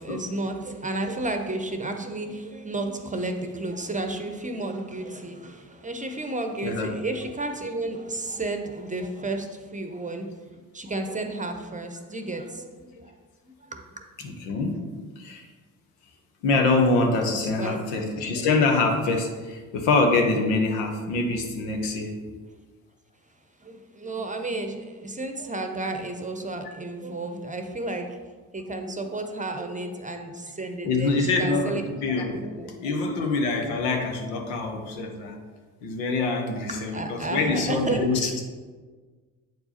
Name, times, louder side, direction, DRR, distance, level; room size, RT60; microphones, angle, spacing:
voice 1, 0.0-10.3 10.7-13.1 13.6-14.0 17.4-17.8 23.6-28.2 28.5-31.8 32.3-33.0 33.5-33.6 36.7-38.3, right 2 dB, 15° right, 5 dB, 0.9 m, -32 dB
voice 2, 14.2-14.8 15.2-15.4 16.4-22.1 30.8-32.5 32.8-35.4 35.8-38.4, left 3 dB, 70° left, 3 dB, 1.1 m, -25 dB
8.1 x 4.6 x 4.2 m, 1.4 s
hypercardioid pair, 50°, 43 cm